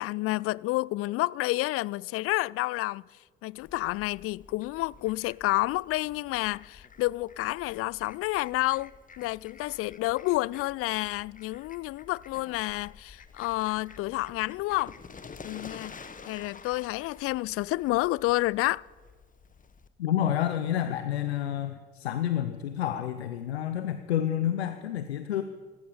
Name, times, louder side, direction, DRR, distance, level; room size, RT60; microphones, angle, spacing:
voice 1, 0.0-3.0 3.4-15.0 15.4-18.8, left 19 dB, 45° left, 0.4 m, -29 dB
Fowl, 3.6-19.9, left 5 dB, 25° left, 1.3 m, -50 dB
voice 2, 20.0-25.4, left 11 dB, 80° left, 0.7 m, -29 dB
16.5 x 15.5 x 5.0 m
figure-of-eight pair, 55°, 31 cm